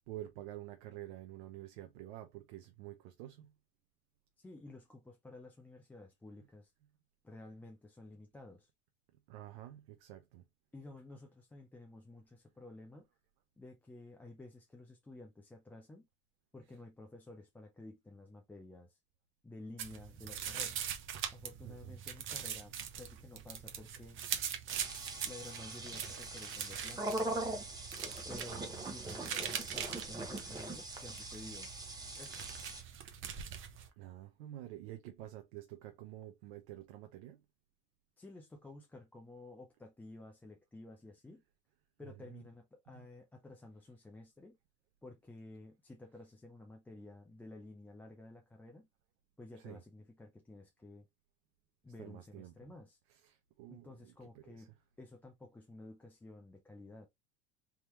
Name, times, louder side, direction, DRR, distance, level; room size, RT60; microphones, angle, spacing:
voice 1, 0.1-3.5 9.3-10.4 21.6-21.9 28.5-28.9 34.0-37.4 42.3-42.4 42.9-43.0 49.6-49.8 52.0-52.5 53.2-54.6, right 14 dB, 75° right, 0.7 m, -49 dB
voice 2, 4.4-6.7 7.2-8.7 10.7-13.1 13.6-16.1 16.5-19.0 19.4-20.8 21.3-24.2 25.2-27.1 28.3-31.7 32.2-32.5 38.2-41.4 42.0-44.6 45.0-48.9 49.4-51.1 51.8-53.0 53.7-54.7 55.0-57.1, left 2 dB, 5° left, 0.4 m, -53 dB
sound 1, 19.8-33.9, right 8 dB, 40° right, 0.8 m, -43 dB
sound 2, 24.7-32.8, right 2 dB, 10° right, 0.9 m, -42 dB
3.6 x 2.9 x 3.0 m
supercardioid pair, 135°, 32 cm